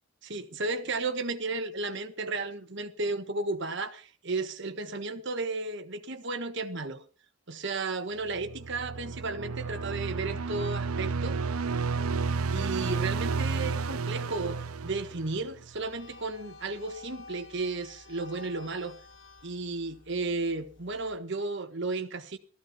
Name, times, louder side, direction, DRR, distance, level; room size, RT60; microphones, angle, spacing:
voice 1, 0.2-7.0 7.5-11.4 12.5-19.0 19.4-22.4, right 3 dB, 55° right, 1.4 m, -33 dB
sound 1, 8.3-15.7, right 4 dB, 80° right, 0.6 m, -31 dB
sound 2, 15.7-21.2, left 3 dB, 55° left, 1.7 m, -51 dB
15.5 x 14.0 x 4.4 m
head